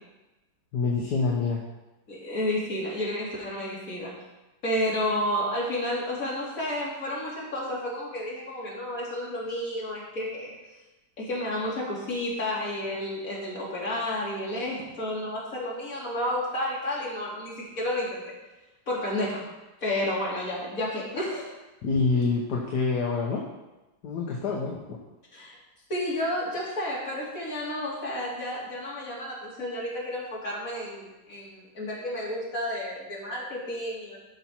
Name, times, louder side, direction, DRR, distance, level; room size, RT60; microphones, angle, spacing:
voice 1, 0.7-1.6 21.8-23.4 24.0-24.8, left 4 dB, 70° left, -1 dB, 1.6 m, -26 dB
voice 2, 2.1-4.1 4.6-10.5 11.2-18.3 18.9-19.4 19.8-21.5 25.3-25.6 25.9-34.2, left 1 dB, 50° left, -6 dB, 3.1 m, -31 dB
12.0 x 5.7 x 4.5 m, 1.0 s
omnidirectional pair, 1.8 m